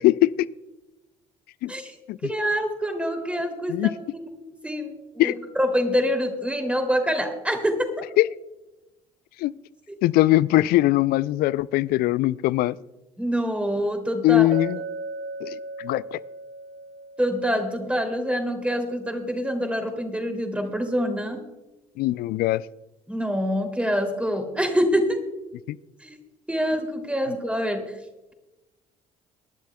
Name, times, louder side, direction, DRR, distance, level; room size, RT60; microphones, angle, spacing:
voice 1, 0.0-0.5 1.6-1.7 2.1-2.2 3.7-3.9 5.2-5.4 8.2-8.3 9.4-9.5 10.0-12.8 14.2-14.8 15.4-16.2 22.0-22.6 25.7-25.8, left 16 dB, 55° left, 21 dB, 0.4 m, -21 dB
voice 2, 2.2-4.9 5.2-7.9 9.9-10.0 13.2-14.5 17.2-21.4 23.1-25.2 26.0-26.2 26.5-27.9, equal, 5° right, 4 dB, 2.7 m, -26 dB
Chink clink, 14.5-18.5, right 3 dB, 40° right, 1.1 m, -37 dB
24.5 x 11.5 x 2.2 m, 1.0 s
figure-of-eight pair, 50°, 19 cm